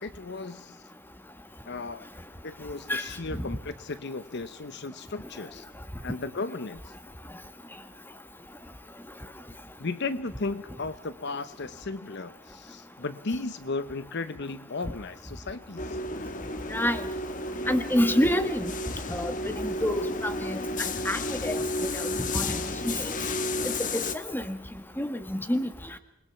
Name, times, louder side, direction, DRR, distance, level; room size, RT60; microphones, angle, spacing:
voice 1, 0.0-0.8 1.6-2.1 2.4-5.7 6.0-6.9 9.8-16.0, left 3 dB, 55° left, 14 dB, 0.9 m, -35 dB
sound 1, 15.8-24.1, left 2 dB, 40° left, 1.3 m, -32 dB
voice 2, 16.7-17.0 17.7-18.7 19.1-20.6 21.0-21.6 21.9-22.0 22.3-22.6 22.8-23.2 23.6-24.6 25.0-25.7, left 1 dB, 10° left, 10 dB, 1.5 m, -28 dB
27.0 x 21.0 x 5.8 m, 0.76 s
head